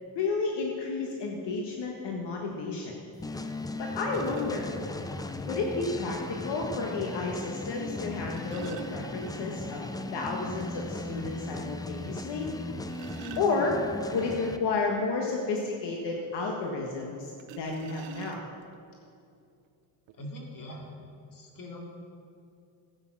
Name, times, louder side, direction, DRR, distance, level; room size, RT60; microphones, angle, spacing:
voice 1, 0.1-3.0 3.8-4.7 5.5-12.5 13.4-13.8 14.1-17.3 17.6-18.4, left 3 dB, 70° left, 0 dB, 1.6 m, -31 dB
sound 1, 3.2-14.6, left 2 dB, 10° left, 0.4 m, -37 dB
sound 2, 4.1-4.7 6.1-6.2 8.0-9.7 10.1-10.2 10.6-10.7 11.2-11.3 12.5-14.0 17.4-18.7 19.6-19.7 20.1-20.3, right 8 dB, 85° right, 0.9 m, -46 dB
voice 2, 20.1-20.9 21.3-21.8, left 1 dB, 50° left, 0 dB, 2.4 m, -42 dB
14.5 x 8.7 x 6.0 m, 2.5 s
cardioid pair, 145°, 43 cm